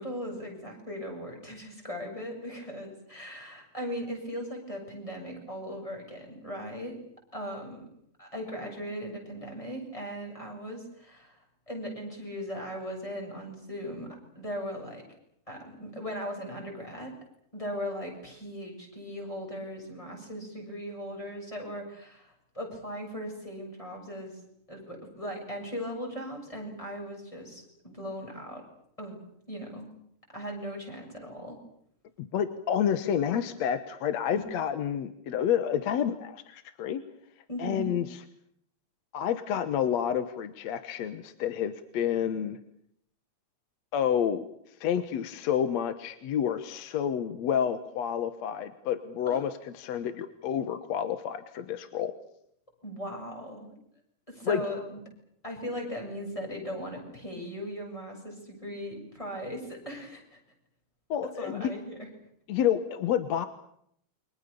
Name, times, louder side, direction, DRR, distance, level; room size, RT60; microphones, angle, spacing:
voice 1, 0.0-7.0 7.3-7.9 8.2-14.1 14.3-15.0 15.5-17.2 17.5-24.4 24.7-28.6 29.0-29.2 29.5-29.9 30.3-31.6 34.3-34.4 37.5-37.9 49.3-49.4 52.8-53.8 54.3-55.0 55.4-60.4 61.4-62.1, equal, 10° left, 1 dB, 7.7 m, -38 dB
voice 2, 32.2-37.0 37.6-38.2 39.1-42.6 43.9-44.5 44.8-52.1 54.5-54.6 61.1-61.7 62.5-63.5, left 9 dB, 70° left, 11 dB, 2.3 m, -29 dB
29.0 x 24.5 x 6.9 m, 0.71 s
omnidirectional pair, 3.3 m